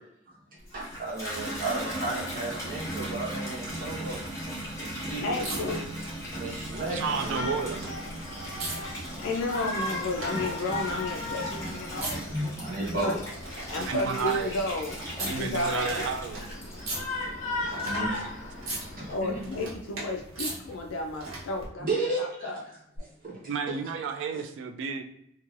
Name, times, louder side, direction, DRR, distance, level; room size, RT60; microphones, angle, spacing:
Water tap faucet / Bathtub (filling or washing), 0.6-17.5 18.0-18.6, equal, 15° left, 1.1 m, -38 dB
voice 1, 0.7-4.2 4.8-5.6 6.3-7.8 10.3-10.4 12.3-13.2 17.6-18.2 18.8-19.4 21.8-22.5 23.0-23.8 24.3-24.4, right 2 dB, 45° right, -6 dB, 1.0 m, -34 dB
sound 1, 3.5-21.7 23.0-23.1, right 2 dB, 90° right, 0.9 m, -42 dB
voice 2, 5.2-5.9 8.8-12.3 13.0-13.2 13.7-16.1 19.1-21.9 22.2-22.6, left 2 dB, 70° left, 3 dB, 0.3 m, -32 dB
voice 3, 6.9-7.8 13.7-14.5 15.3-16.5 23.5-25.0, right 5 dB, 65° right, 7 dB, 0.3 m, -31 dB
Shout, 7.0-19.1, left 2 dB, 35° left, 0.9 m, -38 dB
3.0 x 2.7 x 2.4 m, 0.77 s
head